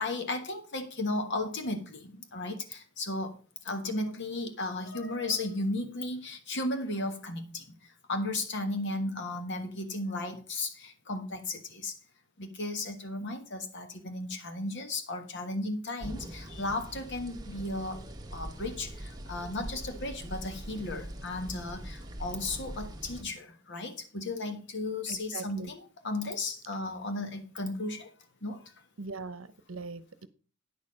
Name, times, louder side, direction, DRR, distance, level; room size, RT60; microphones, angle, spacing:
voice 1, 0.0-3.4 3.6-7.7 8.1-12.0 12.4-18.0 18.3-28.1 28.4-28.7, left 2 dB, 60° left, 7 dB, 1.5 m, -35 dB
sound 1, 16.0-23.2, right 1 dB, 20° right, 1.1 m, -42 dB
voice 2, 25.1-25.7 29.0-30.3, right 3 dB, 70° right, 15 dB, 0.8 m, -41 dB
9.3 x 6.6 x 5.3 m, 0.37 s
head